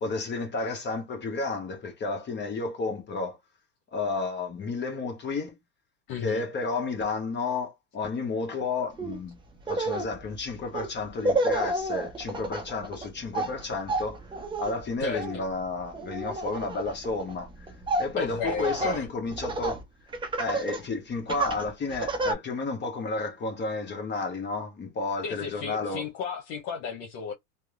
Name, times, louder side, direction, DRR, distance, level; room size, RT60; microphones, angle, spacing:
voice 1, 0.0-3.4 3.9-5.6 6.2-9.3 9.7-14.2 14.6-17.7 18.0-19.8 20.4-26.0, left 3 dB, 25° left, 0.7 m, -31 dB
voice 2, 6.1-6.4 15.0-15.4 18.2-19.1 25.2-27.3, left 6 dB, 65° left, 0.9 m, -34 dB
Laughter, 9.0-9.2 9.6-19.8 20.1-20.8 21.3-22.3, right 2 dB, 10° right, 0.5 m, -31 dB
2.8 x 2.0 x 2.4 m
hypercardioid pair, 95°, 48 cm